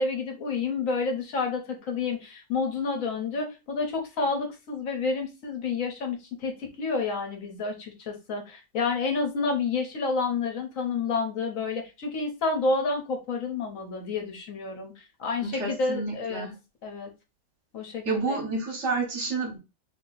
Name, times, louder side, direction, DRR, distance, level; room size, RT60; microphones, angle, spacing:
voice 1, 0.0-14.9 15.2-16.5 16.8-17.1 17.7-18.4, left 4 dB, 70° left, 3 dB, 1.3 m, -29 dB
voice 2, 15.4-16.5 18.0-19.6, right 3 dB, 55° right, 1 dB, 1.3 m, -29 dB
2.9 x 2.8 x 3.9 m, 0.27 s
omnidirectional pair, 1.5 m